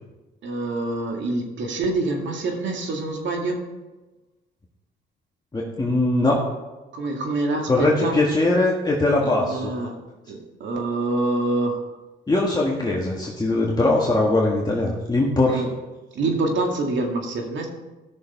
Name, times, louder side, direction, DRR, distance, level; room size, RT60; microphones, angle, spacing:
voice 1, 0.4-3.6 6.9-8.2 9.2-10.0 10.3-11.9 15.5-15.7 16.1-17.7, right 2 dB, 70° right, 2 dB, 2.3 m, -26 dB
voice 2, 5.5-6.4 7.7-9.6 12.3-15.6, left 2 dB, 20° left, -3 dB, 1.6 m, -21 dB
15.5 x 6.6 x 4.5 m, 1.1 s
cardioid pair, 90°, 20 cm